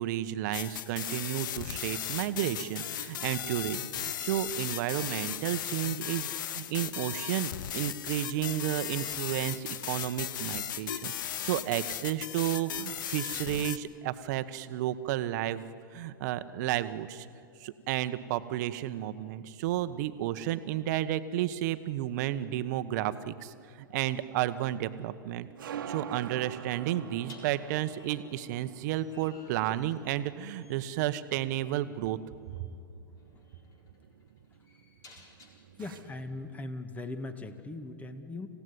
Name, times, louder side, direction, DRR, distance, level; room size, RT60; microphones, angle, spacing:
voice 1, 0.0-15.7 15.9-17.3 17.6-32.2, right 13 dB, 55° right, 12 dB, 1.2 m, -32 dB
sound 1, 0.5-13.8, left 10 dB, 65° left, 1.0 m, -36 dB
sound 2, 23.7-36.6, right 8 dB, 70° right, 1.5 m, -48 dB
sound 3, 27.2-30.3 30.6-31.0 32.5-32.7 33.2-36.0, left 3 dB, 30° left, 4.3 m, -57 dB
voice 2, 35.8-38.5, left 2 dB, 15° left, 9 dB, 1.9 m, -39 dB
26.5 x 16.5 x 9.6 m, 2.6 s
hypercardioid pair, 105°, 12 cm